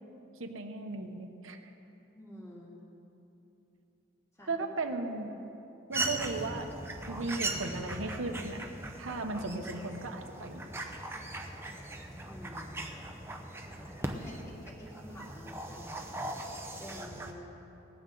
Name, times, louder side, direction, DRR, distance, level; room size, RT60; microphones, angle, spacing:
voice 1, 0.4-1.6 4.5-5.4 5.9-6.7 7.1-8.6 8.9-10.6, right 3 dB, 85° right, 5 dB, 1.0 m, -36 dB
voice 2, 2.1-2.8 4.4-4.5 12.3-12.9 13.6-16.0 16.8-17.6, equal, 15° left, -5 dB, 2.7 m, -48 dB
sound 1, 5.9-17.3, right 2 dB, 10° right, 0.8 m, -39 dB
18.5 x 15.0 x 4.0 m, 2.9 s
head